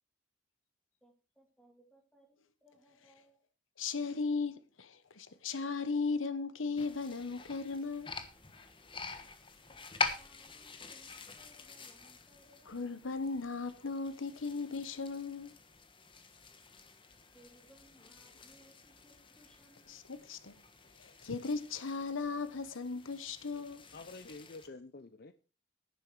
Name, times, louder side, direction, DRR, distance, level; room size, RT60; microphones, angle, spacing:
voice 1, 1.0-3.4 10.0-13.0 17.3-20.0, right 1 dB, 5° left, 3.1 m, -65 dB
voice 2, 3.8-8.1 12.7-15.5 19.9-20.6 21.0-23.8, left 4 dB, 90° left, 1.0 m, -37 dB
sound 1, 6.8-24.7, left 4 dB, 25° left, 1.3 m, -45 dB
voice 3, 23.9-25.3, left 3 dB, 50° left, 0.6 m, -48 dB
11.0 x 10.0 x 4.7 m
head